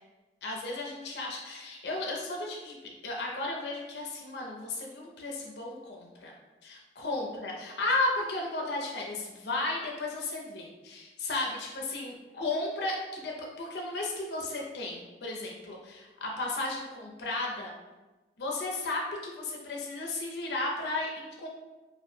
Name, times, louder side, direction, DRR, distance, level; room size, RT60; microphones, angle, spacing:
voice 1, 0.4-6.3 6.6-17.7 18.4-21.5, left 2 dB, 70° left, -1 dB, 0.4 m, -34 dB
2.5 x 2.0 x 3.1 m, 1.2 s
head